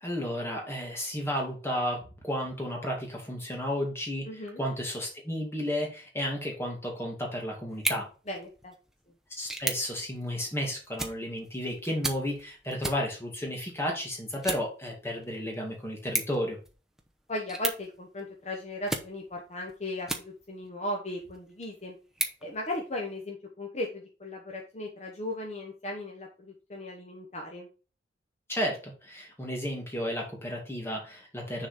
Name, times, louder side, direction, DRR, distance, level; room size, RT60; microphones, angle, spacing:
voice 1, 0.0-8.1 9.3-16.6 28.5-31.7, equal, 15° left, 0 dB, 2.0 m, -33 dB
voice 2, 4.3-4.6 8.3-8.7 17.3-21.9 22.4-27.7, left 1 dB, 40° left, 0 dB, 1.1 m, -37 dB
sound 1, 7.7-20.7 21.2-23.2, right 2 dB, 5° right, 0.8 m, -39 dB
6.6 x 4.0 x 5.0 m, 0.34 s
head